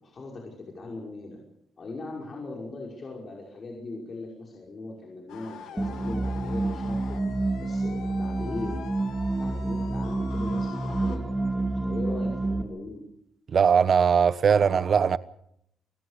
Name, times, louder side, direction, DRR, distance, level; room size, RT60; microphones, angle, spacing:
voice 1, 0.0-1.4 1.8-7.2 7.6-8.8 9.4-11.2 11.5-13.0, left 3 dB, 40° left, 5.7 m, -39 dB
sound 1, 5.3-11.2, left 9 dB, 85° left, 2.6 m, -44 dB
sound 2, 5.8-12.6, right 2 dB, 10° right, 2.6 m, -28 dB
voice 2, 13.5-15.2, right 6 dB, 50° right, 1.1 m, -20 dB
28.5 x 17.0 x 6.7 m
cardioid pair, 90°, 0 cm